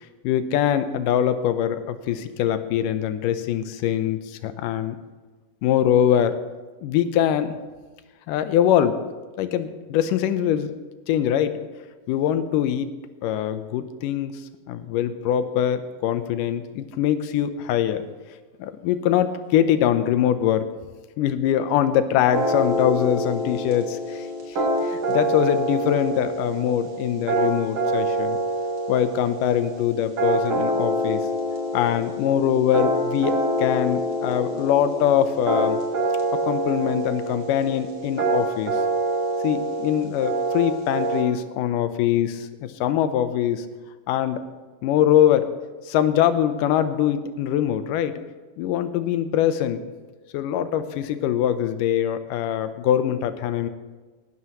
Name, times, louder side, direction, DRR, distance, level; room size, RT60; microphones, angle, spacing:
voice 1, 0.2-5.0 5.6-6.3 6.8-7.6 8.3-9.0 9.4-10.7 11.1-11.5 12.1-12.9 13.2-14.3 14.7-18.1 18.6-20.7 21.2-28.4 28.9-31.2 31.7-35.8 36.3-38.8 39.4-43.7 44.1-44.4 44.8-45.5 45.9-48.1 48.6-49.8 50.3-53.7, left 10 dB, 80° left, 10 dB, 2.3 m, -23 dB
sound 1, 22.3-41.2, right 1 dB, 50° right, 3.3 m, -26 dB
19.0 x 12.0 x 3.0 m, 1.3 s
omnidirectional pair, 3.9 m